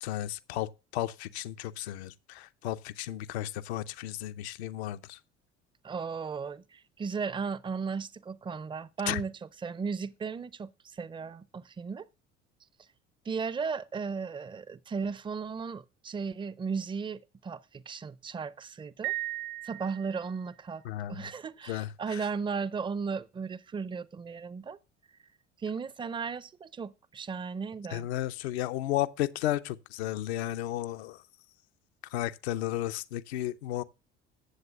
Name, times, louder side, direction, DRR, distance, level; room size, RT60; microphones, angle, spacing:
voice 1, 0.0-5.2 9.1-9.2 20.8-21.2 21.7-22.2 27.9-31.2 32.1-33.8, left 13 dB, 70° left, 0.7 m, -33 dB
voice 2, 5.8-9.3 9.6-12.1 13.3-19.1 19.6-20.8 21.1-24.8 25.6-28.1, right 5 dB, 15° right, 0.5 m, -35 dB
Piano, 19.0-20.5, right 17 dB, 65° right, 1.1 m, -36 dB
14.5 x 7.8 x 2.4 m
figure-of-eight pair, 60°, 34 cm